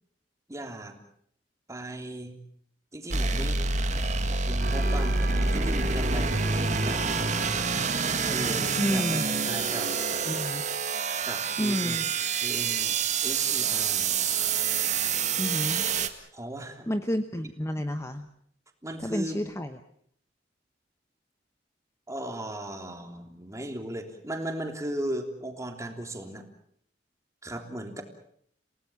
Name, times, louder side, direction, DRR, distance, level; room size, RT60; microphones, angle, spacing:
voice 1, 0.5-1.0 1.7-2.4 2.9-3.6 4.3-7.2 8.3-9.9 11.2-12.0 12.4-13.0 13.2-14.2 16.3-16.9 18.8-19.4 22.1-26.4 27.4-28.0, right 1 dB, 20° right, 4 dB, 3.3 m, -37 dB
sound 1, 3.1-16.1, right 5 dB, 45° right, 1.9 m, -27 dB
sound 2, 4.6-11.6, right 2 dB, 60° right, 5.1 m, -39 dB
voice 2, 8.8-9.2 10.3-10.6 11.6-12.0 15.4-15.8 16.9-18.3 19.0-19.8, equal, 15° left, 8 dB, 1.0 m, -30 dB
29.0 x 18.0 x 7.3 m, 0.65 s
head